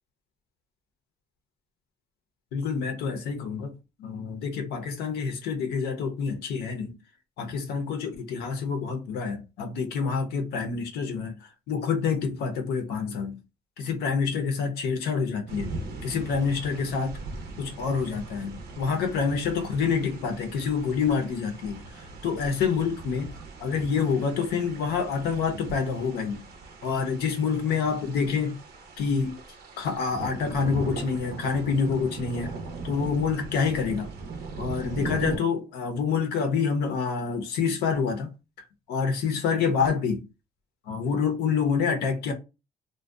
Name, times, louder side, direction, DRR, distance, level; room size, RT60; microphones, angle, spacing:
voice 1, 2.5-3.7 4.0-6.9 7.4-11.3 11.7-13.4 13.8-15.8 16.0-17.2 17.6-21.8 22.2-23.3 23.6-26.4 26.8-28.6 29.0-29.4 29.8-32.5 32.8-34.1 34.6-38.3 38.6-40.2 40.9-42.3, left 5 dB, 75° left, 0.6 m, -27 dB
sound 1, 15.5-35.4, right 3 dB, 75° right, 0.6 m, -39 dB
2.6 x 2.1 x 2.3 m
cardioid pair, 110°, 17 cm